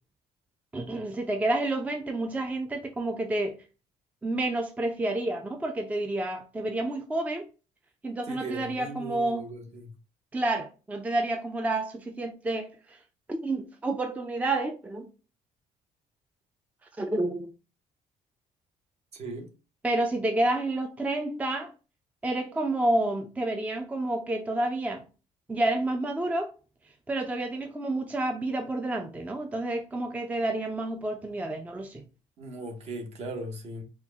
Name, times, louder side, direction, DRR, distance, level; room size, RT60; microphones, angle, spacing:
voice 1, 0.7-3.6 4.2-7.5 8.0-9.5 10.3-13.0 13.3-15.1 17.0-17.5 19.8-21.7 22.2-25.0 25.5-26.5 27.1-32.0, right 2 dB, 10° right, 0.4 m, -29 dB
voice 2, 8.3-9.9 19.1-19.5 32.4-33.8, right 2 dB, 50° right, 1.1 m, -38 dB
4.4 x 2.3 x 3.5 m
cardioid pair, 130°, 14 cm